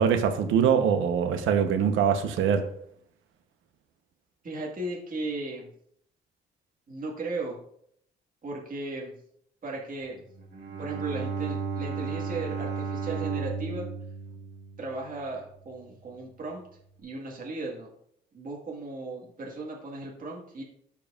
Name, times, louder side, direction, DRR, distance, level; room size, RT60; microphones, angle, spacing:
voice 1, 0.0-2.7, right 7 dB, 85° right, 7 dB, 0.9 m, -23 dB
voice 2, 4.4-5.7 6.9-7.6 8.4-9.1 9.6-10.2 10.8-13.9 14.8-16.6 17.0-17.9 18.3-20.6, right 2 dB, 45° right, -3 dB, 1.6 m, -36 dB
Bowed string instrument, 10.3-15.5, right 5 dB, 65° right, 1.8 m, -34 dB
12.0 x 4.7 x 2.4 m, 0.70 s
cardioid pair, 90°, 20 cm